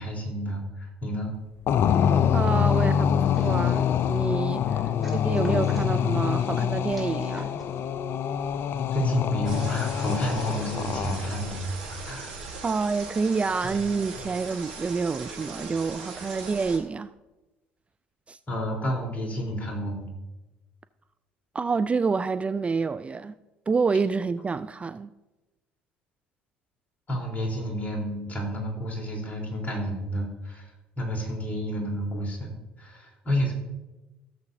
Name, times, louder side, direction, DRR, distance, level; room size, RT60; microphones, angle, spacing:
voice 1, 0.0-1.3 4.6-5.1 8.9-12.4 13.6-13.8 18.5-20.1 27.1-32.5 32.8-33.5, equal, 30° left, 3.6 m, -30 dB
sound 1, 1.7-11.6, left 8 dB, 50° left, 0.5 m, -25 dB
voice 2, 2.3-7.5 12.6-17.1 18.3-18.4 21.5-23.3 23.7-25.1, right 4 dB, 25° right, 0.3 m, -28 dB
sound 2, 3.3-4.1 5.0-6.0 6.9-7.8, right 1 dB, ahead, 3.5 m, -47 dB
sound 3, 9.5-16.8, right 4 dB, 80° right, 1.6 m, -39 dB
16.5 x 7.1 x 2.7 m
hypercardioid pair, 60°, 5 cm